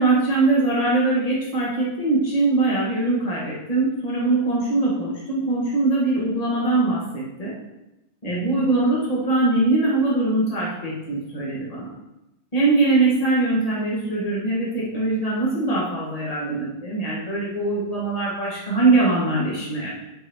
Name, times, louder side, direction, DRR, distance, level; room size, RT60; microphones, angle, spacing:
voice 1, 0.0-7.5 8.2-11.9 12.5-19.9, right 2 dB, 65° left, -6 dB, 0.3 m, -22 dB
8.2 x 5.2 x 4.4 m, 0.92 s
omnidirectional pair, 4.2 m